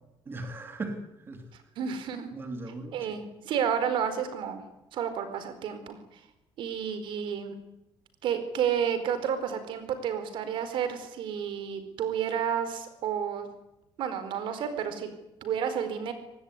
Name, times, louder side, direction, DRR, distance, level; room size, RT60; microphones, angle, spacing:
voice 1, 0.3-1.4 2.3-3.2, right 2 dB, 25° right, 5 dB, 3.1 m, -38 dB
voice 2, 1.8-2.3 2.9-4.6 4.9-6.0 6.6-7.5 8.2-13.5 14.0-15.1 15.4-16.1, right 8 dB, 65° right, 10 dB, 4.6 m, -31 dB
24.5 x 19.0 x 9.7 m, 0.92 s
cardioid pair, 170°, 9 cm